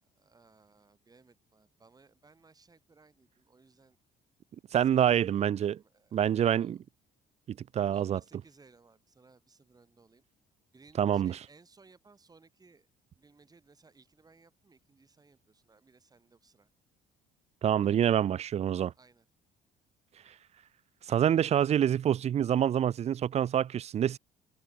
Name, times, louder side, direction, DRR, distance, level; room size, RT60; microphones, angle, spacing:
voice 1, 0.0-4.0 4.8-6.8 7.7-10.2 10.7-12.9 13.2-16.7 18.9-19.3, right 4 dB, 20° right, 5.0 m, -61 dB
voice 2, 4.7-5.8 6.1-6.8 7.5-8.2 11.0-11.3 17.6-18.9 21.1-24.2, right 10 dB, 40° right, 0.5 m, -26 dB
cardioid pair, 110°, 17 cm